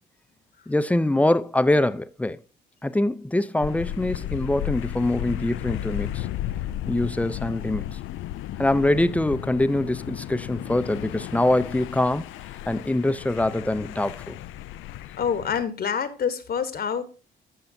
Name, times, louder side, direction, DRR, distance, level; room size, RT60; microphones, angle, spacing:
voice 1, 0.7-2.4 2.8-6.3 6.9-8.0 8.6-12.3 12.7-14.4, left 1 dB, 5° left, 0.5 m, -24 dB
sound 1, 3.6-15.6, left 13 dB, 80° left, 0.4 m, -34 dB
voice 2, 15.2-17.0, left 7 dB, 50° left, 1.1 m, -26 dB
13.0 x 5.5 x 2.6 m
cardioid pair, 90°, 20 cm